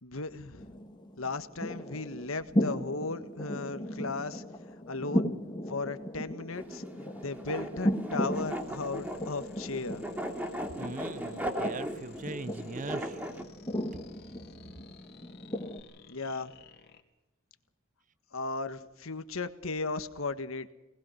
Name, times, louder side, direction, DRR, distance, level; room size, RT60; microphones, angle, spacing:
voice 1, 0.0-0.7 1.2-4.4 4.9-5.3 5.7-6.8 7.1-10.0 16.1-16.5 18.3-20.7, left 3 dB, 80° left, 10 dB, 1.6 m, -36 dB
sound 1, 0.6-15.8, equal, 20° left, 1.8 m, -36 dB
sound 2, 6.5-13.4, equal, 10° right, 3.0 m, -38 dB
sound 3, 8.3-17.0, left 4 dB, 50° left, 2.9 m, -56 dB
voice 2, 10.8-13.2, right 2 dB, 40° right, 17 dB, 0.7 m, -40 dB
26.0 x 19.5 x 5.8 m, 0.99 s
head